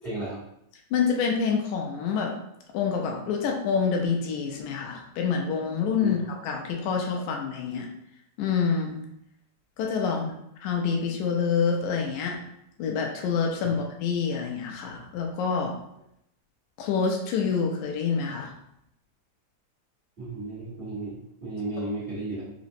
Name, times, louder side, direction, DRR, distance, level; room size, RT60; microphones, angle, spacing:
voice 1, 0.0-0.4 6.0-6.1 10.0-10.1 13.6-13.7 20.2-22.5, right 2 dB, 35° right, -12 dB, 0.9 m, -34 dB
voice 2, 0.9-2.4 2.7-7.9 8.4-9.0 9.8-10.3 10.6-12.4 12.8-15.7 16.8-18.5, left 6 dB, 80° left, 1 dB, 1.9 m, -27 dB
5.0 x 2.0 x 2.6 m, 0.78 s
omnidirectional pair, 3.5 m